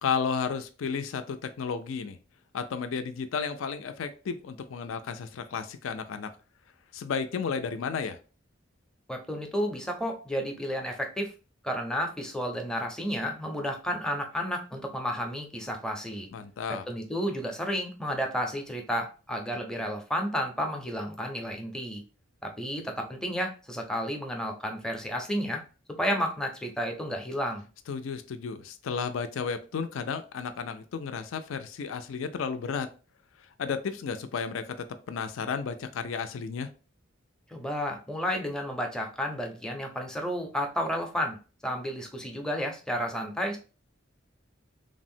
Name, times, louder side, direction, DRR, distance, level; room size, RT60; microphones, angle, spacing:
voice 1, 0.0-2.2 2.5-6.3 6.9-8.2 16.3-16.8 27.9-32.9 33.6-34.8 35.1-36.7, left 6 dB, 80° left, 10 dB, 0.4 m, -33 dB
voice 2, 9.1-11.3 11.6-16.3 16.7-22.0 22.4-25.6 26.0-27.7 37.5-41.4 41.6-43.6, equal, 5° left, 2 dB, 0.5 m, -32 dB
3.3 x 2.0 x 2.6 m, 0.34 s
head